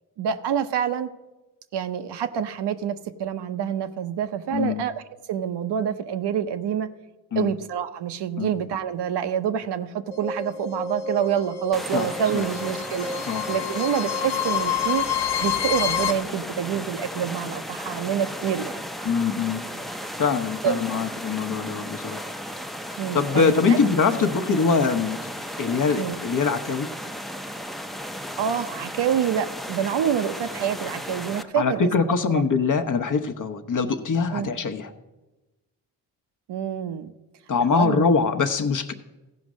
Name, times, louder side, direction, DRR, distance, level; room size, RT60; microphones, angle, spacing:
voice 1, 0.2-1.1 1.7-5.0 5.3-6.9 7.3-15.1 15.4-18.8 20.6-20.8 23.0-23.8 24.2-24.3 26.0-26.2 28.4-31.9 32.3-32.4 34.3-34.5 36.5-37.1 37.7-38.1, right 8 dB, 60° right, 10 dB, 0.8 m, -27 dB
voice 2, 4.5-4.8 7.3-7.5 8.4-8.5 11.9-12.1 12.3-12.4 13.3-13.4 19.0-19.6 20.2-22.2 23.1-26.9 31.6-34.9 37.5-38.9, left 5 dB, 40° left, 8 dB, 1.0 m, -23 dB
sound 1, 10.1-16.1, left 8 dB, 70° left, 1.1 m, -28 dB
sound 2, 11.7-31.4, equal, ahead, 0.6 m, -35 dB
15.0 x 5.2 x 6.2 m, 1.1 s
supercardioid pair, 55°, 46 cm